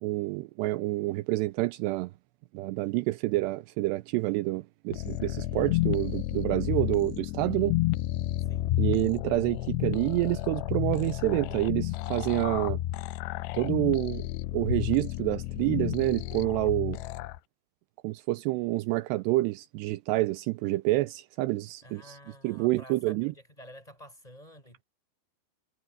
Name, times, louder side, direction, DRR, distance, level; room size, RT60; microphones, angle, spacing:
voice 1, 0.0-2.1 2.5-7.7 8.8-12.8 13.5-14.3 14.5-17.0 18.0-22.2 22.4-23.3, right 19 dB, 90° right, 2.4 m, -28 dB
sound 1, 4.9-17.4, left 16 dB, 80° left, 2.5 m, -31 dB
voice 2, 8.4-8.7 21.8-24.8, equal, 10° left, 5.5 m, -50 dB
omnidirectional pair, 5.5 m